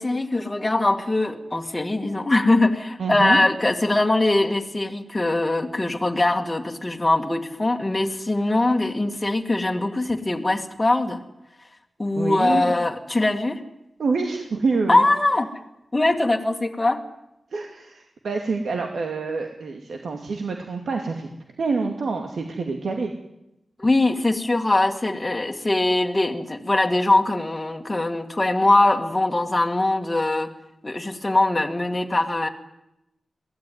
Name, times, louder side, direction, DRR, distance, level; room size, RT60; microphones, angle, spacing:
voice 1, 0.0-11.2 12.0-13.6 14.9-15.5 15.9-17.0 23.8-30.5 30.8-32.5, left 2 dB, 20° left, 4 dB, 2.2 m, -22 dB
voice 2, 3.0-3.4 12.2-12.7 14.0-15.0 17.5-21.3 21.6-23.1, right 4 dB, 70° right, 3 dB, 2.4 m, -26 dB
23.0 x 17.0 x 9.6 m, 0.88 s
wide cardioid pair, 115°, 0 cm